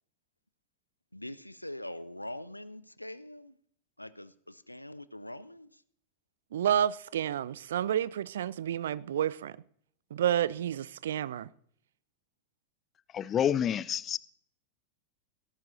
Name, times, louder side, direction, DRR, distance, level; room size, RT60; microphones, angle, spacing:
voice 1, 1.1-3.5 4.0-5.8, left 1 dB, 85° left, 0.5 m, -43 dB
voice 2, 6.5-9.6 10.1-11.5, right 10 dB, 60° right, 0.4 m, -30 dB
voice 3, 13.1-14.2, left 9 dB, 25° left, 0.5 m, -28 dB
18.0 x 13.0 x 2.7 m
figure-of-eight pair, 90°, 0 cm